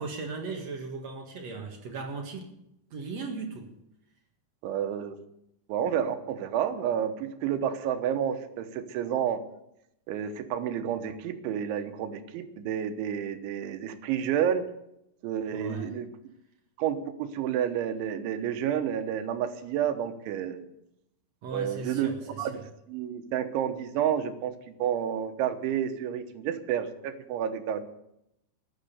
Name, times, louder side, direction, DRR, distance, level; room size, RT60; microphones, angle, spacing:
voice 1, 0.0-2.5 2.9-3.7 15.5-15.9 21.4-22.6, right 4 dB, 55° right, 2 dB, 2.0 m, -37 dB
voice 2, 4.6-5.2 5.7-9.4 10.1-14.6 15.2-16.1 16.8-20.7 21.5-22.1 22.4-22.6 22.9-27.8, right 9 dB, 85° right, 8 dB, 3.5 m, -30 dB
14.5 x 11.0 x 6.8 m, 0.81 s
omnidirectional pair, 5.3 m